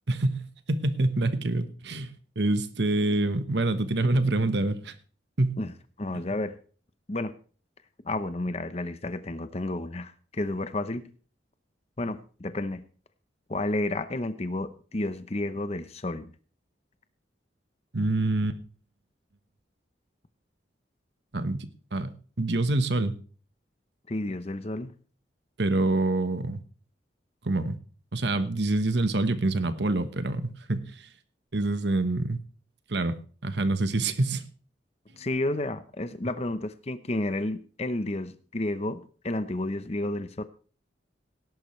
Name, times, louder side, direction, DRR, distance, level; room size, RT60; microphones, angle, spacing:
voice 1, 0.1-4.9 5.4-5.6 17.9-18.6 21.3-23.1 25.6-26.6 27.4-27.8 28.1-31.0 31.5-32.4 32.9-33.1 33.4-34.4, right 2 dB, 65° right, 11 dB, 1.2 m, -26 dB
voice 2, 6.0-6.5 7.1-7.3 8.0-11.1 12.0-12.8 13.5-16.3 24.1-24.9 35.2-40.4, left 2 dB, 35° left, 11 dB, 0.8 m, -31 dB
18.0 x 11.0 x 3.2 m, 0.40 s
head